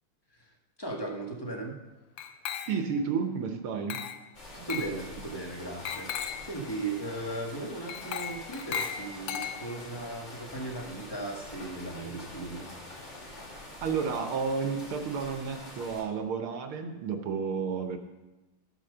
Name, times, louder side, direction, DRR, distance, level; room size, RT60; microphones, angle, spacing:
voice 1, 0.3-1.8 4.5-6.1 6.4-12.7, right 2 dB, 10° left, 0 dB, 1.5 m, -37 dB
Glass, 2.2-3.0 3.9-4.3 4.7-5.0 5.9-6.5 7.9-9.9, left 8 dB, 85° left, 1.7 m, -36 dB
voice 2, 2.6-4.0 13.8-18.0, right 6 dB, 80° right, 6 dB, 1.9 m, -31 dB
sound 1, 4.3-16.0, left 1 dB, 55° left, 3.5 m, -45 dB
12.5 x 7.9 x 6.7 m, 1.1 s
omnidirectional pair, 2.4 m